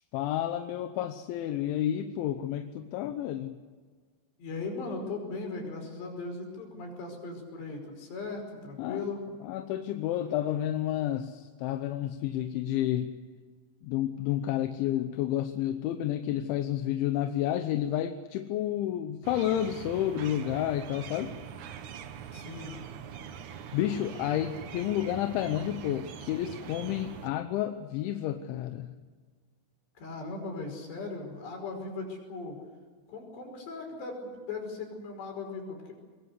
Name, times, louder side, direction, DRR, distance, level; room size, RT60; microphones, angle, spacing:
voice 1, 0.1-3.5 8.8-9.0 9.4-13.1 13.8-21.3 23.7-28.9, left 11 dB, 75° left, 8 dB, 3.2 m, -30 dB
voice 2, 4.4-9.3 22.3-22.8 30.0-32.6 33.1-35.9, left 3 dB, 60° left, 3 dB, 7.4 m, -38 dB
sound 1, 19.2-27.3, right 8 dB, 75° right, 1.7 m, -43 dB
24.0 x 22.0 x 8.2 m, 1.5 s
omnidirectional pair, 5.7 m